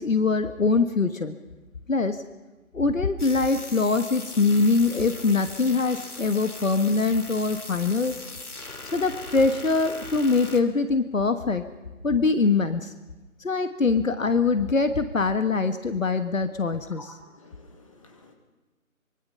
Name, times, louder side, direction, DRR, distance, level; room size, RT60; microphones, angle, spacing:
voice 1, 0.0-1.3 1.9-2.2 2.7-8.2 8.9-11.6 12.0-12.9 13.4-17.1, left 4 dB, 65° left, 9 dB, 1.5 m, -23 dB
sound 1, 3.2-10.6, left 3 dB, 85° left, 3.2 m, -40 dB
voice 2, 17.0-18.3, left 2 dB, 20° left, 3 dB, 2.3 m, -50 dB
25.0 x 23.5 x 5.7 m, 1.1 s
figure-of-eight pair, 170°, 43 cm